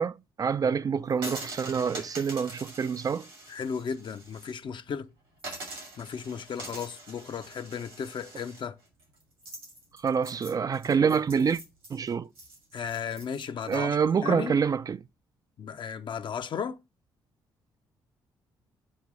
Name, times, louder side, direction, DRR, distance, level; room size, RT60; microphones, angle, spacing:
voice 1, 0.0-3.3 10.0-11.6 11.9-12.3 13.7-15.0, right 6 dB, 35° right, 0.3 m, -26 dB
sound 1, 1.1-4.5 4.9-5.0 5.4-13.8, right 1 dB, 90° right, 2.4 m, -44 dB
voice 2, 3.5-5.1 6.0-8.8 12.7-14.6 15.6-16.8, left 7 dB, 45° left, 0.6 m, -35 dB
7.6 x 2.6 x 5.0 m
figure-of-eight pair, 45°, 11 cm